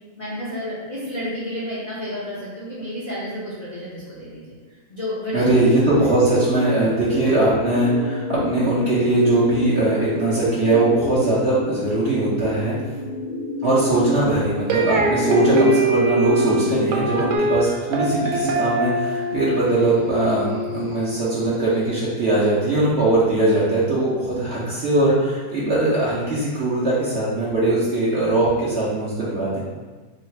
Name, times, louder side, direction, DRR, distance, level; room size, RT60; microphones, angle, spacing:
voice 1, 0.2-4.5 4.9-5.5 7.2-7.3, left 1 dB, 40° left, -9 dB, 0.6 m, -31 dB
voice 2, 5.3-12.7 13.6-29.6, right 2 dB, 50° right, -8 dB, 0.9 m, -20 dB
sound 1, 5.5-17.4, left 1 dB, 75° left, 1.2 m, -30 dB
sound 2, 14.7-21.8, right 1 dB, 90° right, 1.2 m, -23 dB
3.1 x 2.4 x 4.2 m, 1.3 s
omnidirectional pair, 1.8 m